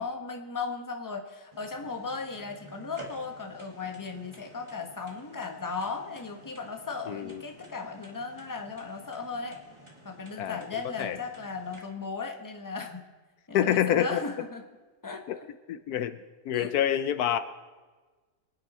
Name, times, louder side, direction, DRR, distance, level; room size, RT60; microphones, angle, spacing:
voice 1, 0.0-9.6 10.0-13.0 13.5-14.6 15.0-15.5 16.5-16.8, left 4 dB, 15° left, 4 dB, 1.2 m, -36 dB
sound 1, 1.5-11.8, right 1 dB, 20° right, 2.1 m, -51 dB
voice 2, 7.1-7.4 10.4-10.6 11.0-11.2 13.5-14.2 15.3-15.4 15.7-16.2 16.5-17.4, left 10 dB, 75° left, 12 dB, 1.1 m, -26 dB
24.5 x 9.8 x 4.3 m, 1.3 s
omnidirectional pair, 1.7 m